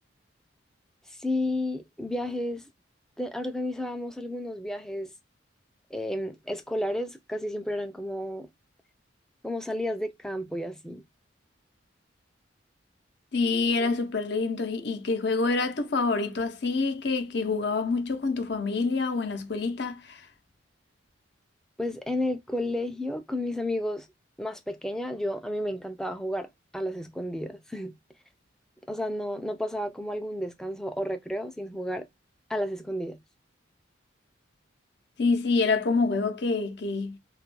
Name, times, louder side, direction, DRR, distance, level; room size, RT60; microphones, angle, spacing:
voice 1, 1.1-2.7 3.2-5.1 5.9-8.5 9.4-11.0 21.8-24.1 24.4-27.9 28.9-32.1 32.5-33.2, left 1 dB, 5° left, 0.3 m, -32 dB
voice 2, 13.3-20.2 35.2-37.2, left 4 dB, 60° left, 0.6 m, -27 dB
2.3 x 2.1 x 3.0 m
head